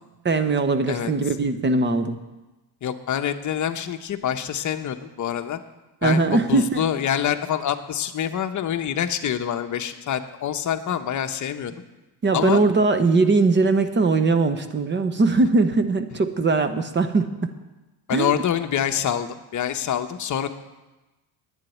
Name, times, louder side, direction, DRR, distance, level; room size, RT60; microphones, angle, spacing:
voice 1, 0.2-2.2 6.0-6.8 12.2-17.5 18.1-18.3, right 3 dB, 25° right, 10 dB, 0.9 m, -20 dB
voice 2, 2.8-5.6 6.0-11.7 12.3-12.6 18.1-20.5, left 9 dB, 40° left, 7 dB, 0.9 m, -26 dB
10.0 x 7.5 x 9.3 m, 1.1 s
cardioid pair, 125°, 45 cm